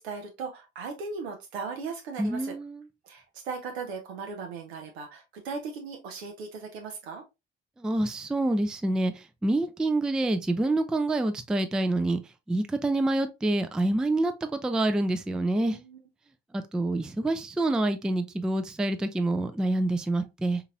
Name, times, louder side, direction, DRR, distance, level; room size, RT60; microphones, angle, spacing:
voice 1, 0.0-2.5 3.0-7.2 15.7-16.0, right 4 dB, 75° right, 0.6 m, -38 dB
voice 2, 2.2-2.8 7.8-12.2 12.5-15.8 16.5-20.6, right 2 dB, ahead, 0.3 m, -27 dB
3.7 x 2.9 x 2.3 m
figure-of-eight pair, 45°, 33 cm